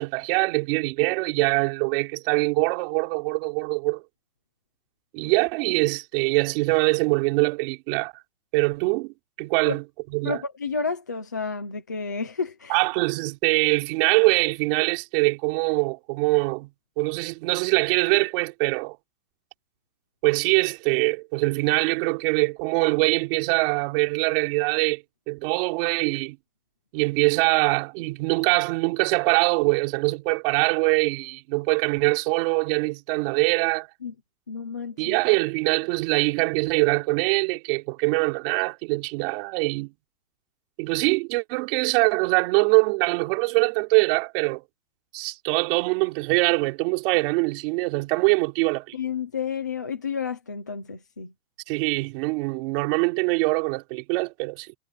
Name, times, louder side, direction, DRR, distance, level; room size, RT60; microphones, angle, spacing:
voice 1, 0.0-4.0 5.1-8.1 8.5-9.1 9.4-9.8 10.1-10.4 12.7-16.7 17.0-19.0 20.2-26.4 26.9-33.9 35.0-39.9 40.8-44.6 45.1-48.9 51.7-54.7, right 27 dB, 40° right, 3.5 m, -23 dB
voice 2, 10.2-12.8 34.0-34.1 34.5-35.2 48.9-51.3, left 5 dB, 15° left, 0.3 m, -31 dB
hypercardioid pair, 155°, 45 cm